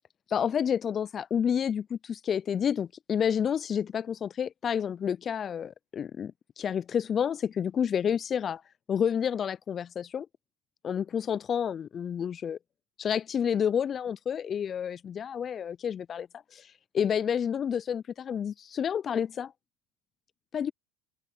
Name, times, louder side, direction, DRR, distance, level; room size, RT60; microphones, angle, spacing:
voice 1, 0.3-6.3 6.6-8.6 8.9-10.3 10.8-12.6 13.0-19.5 20.5-20.7, left 8 dB, 35° left, 0.5 m, -29 dB
open air
hypercardioid pair, 75°, 0 cm